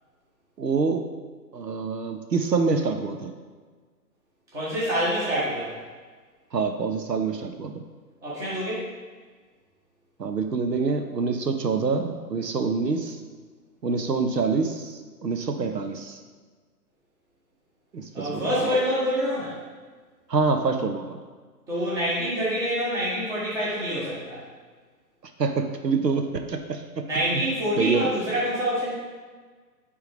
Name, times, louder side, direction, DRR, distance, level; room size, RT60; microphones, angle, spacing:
voice 1, 0.6-1.1 1.5-3.3 6.5-7.8 10.2-13.2 13.8-16.2 17.9-18.7 20.3-21.2 25.4-27.0 27.3-27.4 27.8-28.1, right 4 dB, 80° right, 6 dB, 0.7 m, -26 dB
voice 2, 4.5-5.8 8.2-8.9 18.1-19.6 21.7-24.4 27.0-28.9, equal, 5° right, -8 dB, 0.9 m, -26 dB
8.8 x 3.5 x 3.4 m, 1.5 s
figure-of-eight pair, 130°, 49 cm